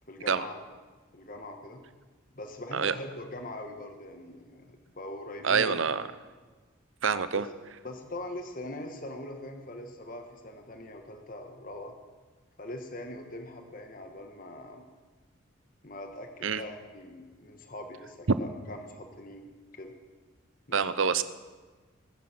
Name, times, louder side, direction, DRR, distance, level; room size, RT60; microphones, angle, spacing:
voice 1, 0.1-0.6 1.1-1.8 2.3-6.0 7.3-7.5 7.8-11.9 12.6-14.8 15.8-19.9 20.7-20.9, left 1 dB, 40° left, 4 dB, 1.5 m, -42 dB
voice 2, 5.4-6.1 7.0-7.4 16.4-16.6 20.7-21.2, right 6 dB, 75° right, 13 dB, 0.7 m, -26 dB
21.5 x 9.5 x 6.1 m, 1.4 s
head